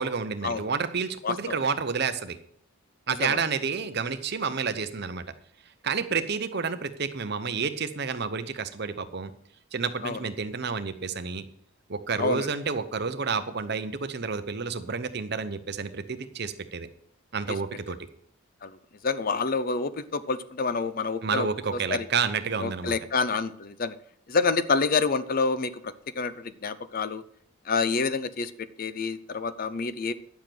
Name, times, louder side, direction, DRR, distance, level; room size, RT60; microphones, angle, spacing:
voice 1, 0.0-2.4 3.1-5.2 5.8-9.3 9.7-11.5 11.9-16.9 17.3-18.0 21.2-23.0, right 5 dB, 50° right, 11 dB, 0.7 m, -30 dB
voice 2, 1.2-1.6 3.2-3.4 10.0-10.2 12.2-12.5 18.6-18.8 19.0-22.1 22.6-24.0 24.3-27.2 27.7-30.1, left 4 dB, 40° left, 14 dB, 0.5 m, -28 dB
10.5 x 7.2 x 6.0 m, 0.66 s
head